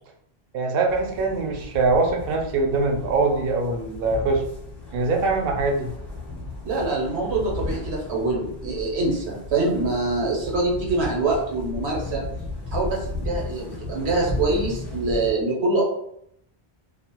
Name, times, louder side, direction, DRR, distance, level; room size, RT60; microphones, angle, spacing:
voice 1, 0.5-4.4 4.9-5.9, right 3 dB, 65° right, 2 dB, 0.7 m, -23 dB
sound 1, 0.9-15.3, left 2 dB, 30° left, 0.7 m, -35 dB
voice 2, 6.6-12.2 12.7-15.8, right 2 dB, 85° right, -2 dB, 1.1 m, -24 dB
2.4 x 2.0 x 2.9 m, 0.73 s
omnidirectional pair, 1.1 m